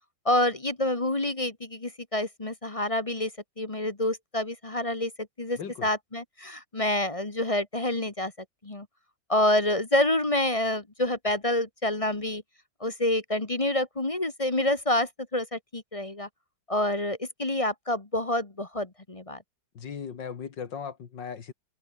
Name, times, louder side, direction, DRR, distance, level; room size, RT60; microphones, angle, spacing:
voice 1, 0.2-3.3 3.6-5.1 5.4-8.3 8.6-8.9 9.3-12.4 12.8-16.3 16.7-19.4, left 1 dB, 20° left, 1.3 m, -27 dB
voice 2, 5.6-5.9 19.7-21.5, left 7 dB, 75° left, 2.4 m, -37 dB
omnidirectional pair, 2.0 m